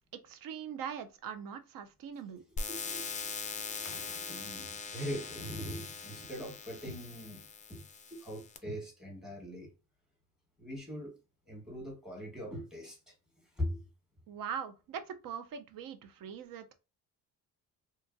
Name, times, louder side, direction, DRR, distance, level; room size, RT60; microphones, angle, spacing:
voice 1, 0.2-2.4 14.3-16.7, right 7 dB, 65° right, 0.6 m, -41 dB
voice 2, 2.5-9.7 10.6-11.2 11.5-13.1 13.5-13.8 16.2-16.3, equal, ahead, 1.3 m, -42 dB
sound 1, 2.6-8.6, left 4 dB, 20° left, 0.3 m, -41 dB
2.8 x 2.4 x 2.5 m
cardioid pair, 100°, 36 cm